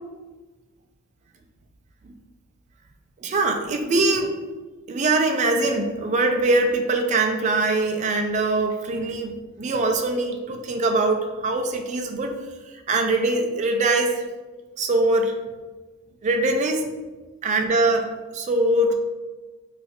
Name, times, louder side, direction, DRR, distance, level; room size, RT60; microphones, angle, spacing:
voice 1, 3.2-4.4 4.9-12.3 12.9-14.2 14.8-15.3 16.2-16.9 17.4-18.1 18.3-18.9, right 2 dB, 35° right, 4 dB, 0.3 m, -22 dB
4.8 x 2.3 x 2.6 m, 1.3 s
head